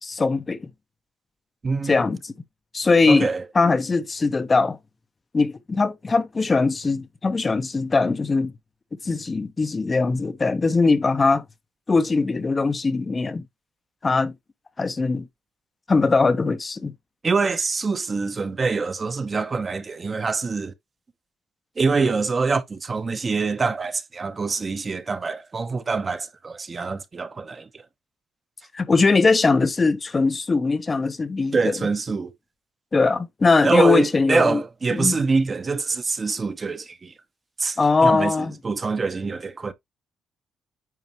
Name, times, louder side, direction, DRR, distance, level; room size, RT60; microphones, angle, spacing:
voice 1, 0.0-0.7 1.8-2.3 2.7-3.3 3.5-4.8 5.3-8.5 9.0-11.4 11.9-13.4 14.0-14.3 14.8-15.3 15.9-16.9 28.7-31.8 32.9-34.6 34.9-35.2 37.8-38.5, left 4 dB, 30° left, 0.8 m, -21 dB
voice 2, 1.6-2.0 3.1-3.4 17.2-20.7 21.8-27.7 31.5-32.3 33.6-37.1 37.6-37.8 38.0-38.3 38.6-39.7, right 4 dB, 35° right, 1.0 m, -24 dB
9.4 x 4.7 x 3.0 m
cardioid pair, 90°, 0 cm